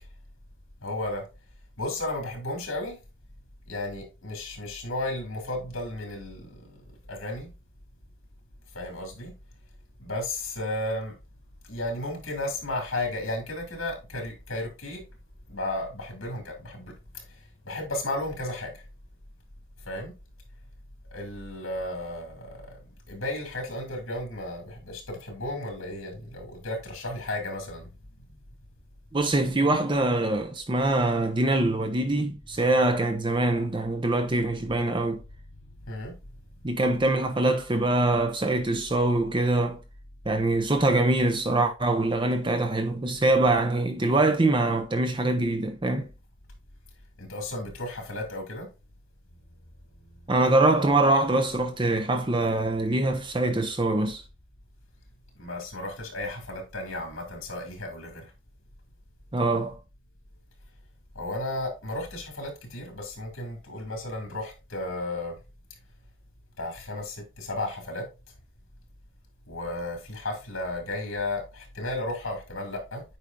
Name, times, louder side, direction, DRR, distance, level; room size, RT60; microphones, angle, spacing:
voice 1, 0.8-1.2 1.8-3.0 3.7-6.8 7.1-7.5 8.7-9.3 10.0-11.1 11.6-15.0 15.5-16.9 17.3-18.8 19.8-20.1 21.1-22.8 23.1-27.9 35.9-36.1 47.2-48.7 55.4-58.3 61.1-65.3 66.6-68.0 69.5-73.0, left 1 dB, 75° left, 2.5 m, -34 dB
voice 2, 29.1-35.2 36.6-39.8 40.3-46.1 50.3-54.2 59.3-59.8, right 2 dB, 25° right, 0.6 m, -24 dB
8.5 x 4.9 x 2.6 m
head